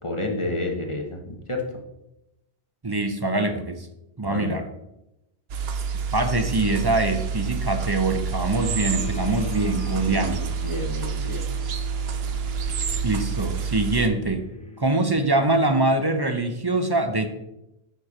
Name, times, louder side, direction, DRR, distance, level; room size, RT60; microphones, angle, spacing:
voice 1, 0.0-1.2 1.5-1.6 4.3-4.6 10.1-10.2 10.6-11.5, left 2 dB, 30° left, 1 dB, 1.2 m, -29 dB
voice 2, 2.8-3.9 4.2-4.6 6.1-10.5 13.0-14.4 14.8-17.3, right 2 dB, 25° right, 7 dB, 0.6 m, -23 dB
sound 1, 5.5-14.1, right 6 dB, 70° right, 0.9 m, -28 dB
sound 2, 8.5-16.1, left 4 dB, 5° left, 0.8 m, -42 dB
9.2 x 4.6 x 5.0 m, 0.89 s
omnidirectional pair, 1.1 m